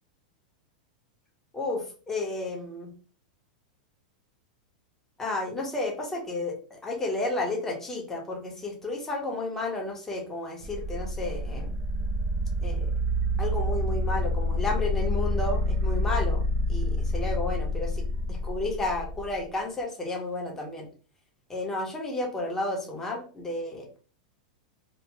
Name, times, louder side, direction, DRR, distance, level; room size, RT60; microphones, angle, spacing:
voice 1, 1.5-2.9 5.2-11.7 12.6-12.9 13.4-16.4 16.7-20.9 21.5-24.0, left 2 dB, 10° left, -1 dB, 1.0 m, -32 dB
sound 1, 10.6-19.4, left 1 dB, 40° right, 0.6 m, -28 dB
3.0 x 2.3 x 3.4 m, 0.38 s
supercardioid pair, 150°, 4 cm